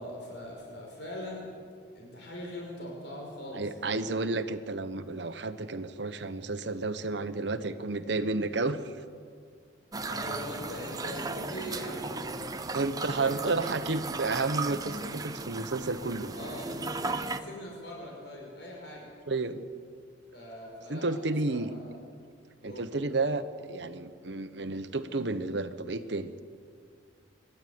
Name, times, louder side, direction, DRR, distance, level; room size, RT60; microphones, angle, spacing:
voice 1, 0.0-1.5 1.9-4.3 10.1-12.5 12.9-13.5 16.3-19.1 20.3-21.9 22.6-22.9, equal, 60° left, -2 dB, 5.2 m, -42 dB
voice 2, 3.5-8.9 12.7-16.3 19.3-19.6 20.9-21.7 22.6-26.3, right 3 dB, 65° right, 10 dB, 1.1 m, -31 dB
sound 1, 9.9-17.4, right 3 dB, 20° right, 0.7 m, -36 dB
25.5 x 11.5 x 9.5 m, 2.1 s
head